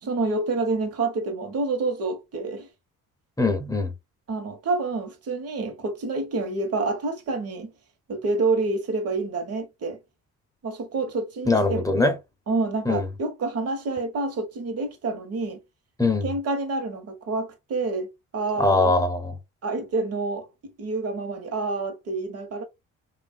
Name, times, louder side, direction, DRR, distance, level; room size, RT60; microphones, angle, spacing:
voice 1, 0.0-2.7 4.3-7.7 8.1-10.0 10.6-11.8 12.5-15.6 16.2-18.1 18.3-18.9 19.6-22.6, right 3 dB, 55° right, 1.0 m, -28 dB
voice 2, 3.4-3.9 11.5-12.2 12.9-13.1 16.0-16.3 18.6-19.4, left 2 dB, 10° left, 0.6 m, -22 dB
3.0 x 2.4 x 2.5 m
cardioid pair, 90°, 30 cm